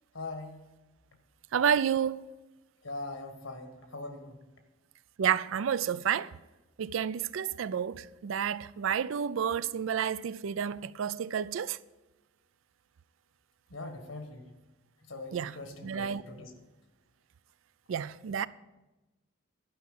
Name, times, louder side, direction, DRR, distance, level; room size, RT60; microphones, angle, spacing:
voice 1, 0.1-0.6 2.8-4.4 13.7-14.4 15.1-16.5, left 2 dB, 80° left, 1.5 m, -41 dB
voice 2, 1.5-2.2 5.2-6.3 6.8-11.8 15.3-15.6 15.8-16.2 17.9-18.5, right 8 dB, 75° right, 0.4 m, -30 dB
11.0 x 5.7 x 7.7 m
head